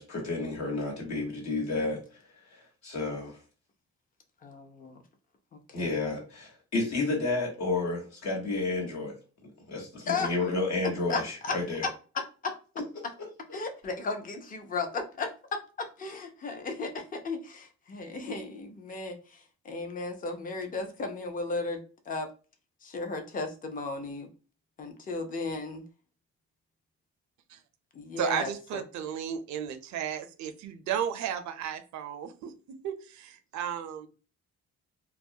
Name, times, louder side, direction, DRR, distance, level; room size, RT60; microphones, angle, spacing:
voice 1, 0.0-2.0 2.5-3.4 5.7-9.1 9.7-11.8, left 3 dB, 65° left, -1 dB, 1.2 m, -31 dB
voice 2, 4.4-5.0 5.5-5.9 10.1-10.3 11.1-11.6 11.8-12.5 13.5-22.3 22.8-24.3 24.8-25.9 27.9-28.8, left 3 dB, 30° left, 6 dB, 0.5 m, -35 dB
voice 3, 28.2-32.5 32.8-34.1, right 9 dB, 70° right, 9 dB, 0.5 m, -34 dB
2.3 x 2.0 x 2.7 m, 0.36 s
cardioid pair, 90°, 30 cm